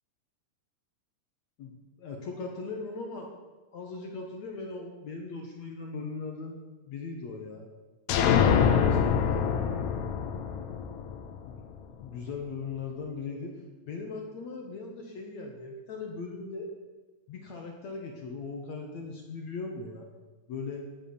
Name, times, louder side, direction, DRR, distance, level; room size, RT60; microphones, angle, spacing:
voice 1, 1.6-3.3 3.7-6.6 6.9-7.7 8.2-9.4 11.4-11.6 12.0-13.5 13.9-16.7 17.3-20.1 20.5-20.9, left 4 dB, 60° left, 2 dB, 2.0 m, -39 dB
sound 1, 8.1-11.8, left 7 dB, 75° left, 2.8 m, -25 dB
18.0 x 7.7 x 7.0 m, 1.2 s
omnidirectional pair, 4.9 m